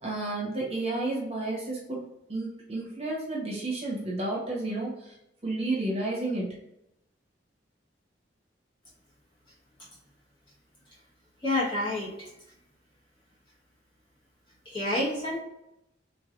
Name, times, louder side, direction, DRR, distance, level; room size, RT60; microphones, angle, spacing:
voice 1, 0.0-2.0 2.3-5.1 5.4-6.5, right 2 dB, 35° right, -4 dB, 1.0 m, -31 dB
voice 2, 11.4-12.3 14.6-15.4, left 1 dB, 25° left, -7 dB, 1.3 m, -28 dB
3.8 x 3.1 x 2.5 m, 0.84 s
head